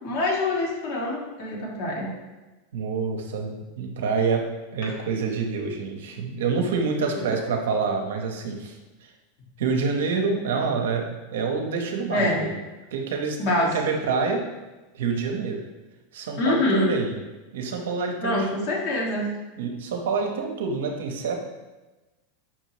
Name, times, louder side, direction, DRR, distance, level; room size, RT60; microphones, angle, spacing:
voice 1, 0.0-2.1 4.8-4.9 7.2-7.3 12.1-12.4 13.4-13.8 16.4-16.9 18.2-19.3, left 2 dB, 55° left, -2 dB, 1.3 m, -25 dB
voice 2, 2.7-4.4 4.7-8.8 9.6-12.5 12.9-14.4 14.9-15.6 16.1-17.1 17.5-18.5 19.6-21.3, right 5 dB, 75° right, 3 dB, 0.7 m, -27 dB
5.7 x 2.7 x 3.1 m, 1.1 s
hypercardioid pair, 105°, 0 cm